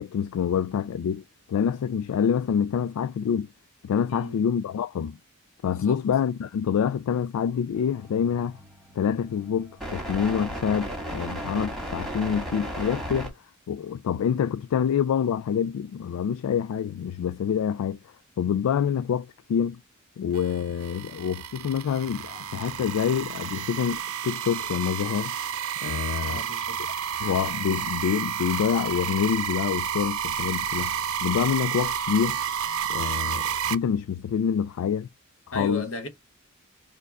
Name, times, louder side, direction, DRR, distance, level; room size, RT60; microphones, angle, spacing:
voice 1, 0.0-3.5 3.8-5.2 5.6-8.6 9.0-13.3 13.7-18.0 18.4-19.8 20.2-25.4 25.8-26.5 27.2-32.4 32.9-35.1 35.5-35.9, left 7 dB, 85° left, 0.3 m, -26 dB
sound 1, 7.7-13.3, equal, ahead, 1.8 m, -35 dB
sound 2, 20.3-33.7, right 8 dB, 75° right, 0.6 m, -31 dB
voice 2, 26.2-26.8 35.5-36.1, left 1 dB, 60° left, 1.4 m, -35 dB
4.5 x 2.3 x 4.7 m
head